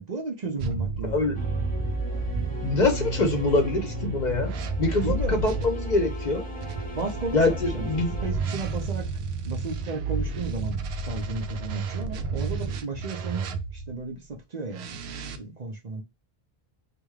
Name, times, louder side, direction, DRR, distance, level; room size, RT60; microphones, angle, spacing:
voice 1, 0.0-1.3 2.3-2.4 5.0-5.4 6.9-7.9 8.2-9.1 9.5-10.8 11.0-15.0 15.4-16.0, right 3 dB, 45° right, 0.8 m, -34 dB
sound 1, 0.6-5.7 6.6-14.0 14.7-15.4, right 4 dB, 85° right, 0.8 m, -32 dB
voice 2, 1.1-1.4 2.6-4.5 4.8-6.4 7.3-8.1, left 2 dB, 50° left, 0.8 m, -24 dB
sound 2, 1.3-8.3, right 1 dB, 10° left, 0.9 m, -33 dB
3.4 x 2.4 x 3.1 m
omnidirectional pair, 1.0 m